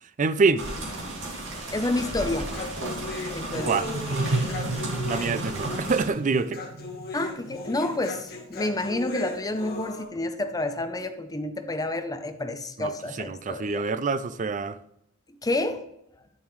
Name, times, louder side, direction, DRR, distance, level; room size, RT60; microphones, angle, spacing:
voice 1, 0.2-0.7 3.5-3.9 5.0-6.6 12.8-12.9 13.2-14.8, right 4 dB, 35° right, 0.4 m, -26 dB
sound 1, 0.6-6.1, right 1 dB, 60° right, 2.6 m, -34 dB
voice 2, 1.7-2.5 3.3-3.8 4.3-4.4 7.1-13.8 15.4-15.8, left 2 dB, 15° left, 0.6 m, -29 dB
Human voice, 2.0-10.0, left 1 dB, 50° left, 1.9 m, -37 dB
sound 2, 3.1-8.4, right 2 dB, 85° right, 1.0 m, -33 dB
10.5 x 7.0 x 3.2 m
head